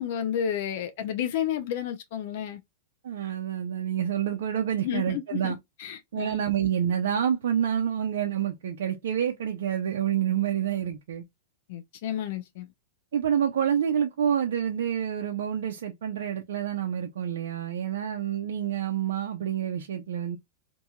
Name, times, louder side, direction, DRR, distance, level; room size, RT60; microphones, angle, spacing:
voice 1, 0.0-2.6 4.8-5.5 5.8-6.4 11.7-12.7, left 9 dB, 60° left, 0.5 m, -31 dB
voice 2, 3.0-5.6 6.1-11.2 13.1-20.4, right 9 dB, 80° right, 0.5 m, -28 dB
2.8 x 2.6 x 2.2 m
hypercardioid pair, 125°, 0 cm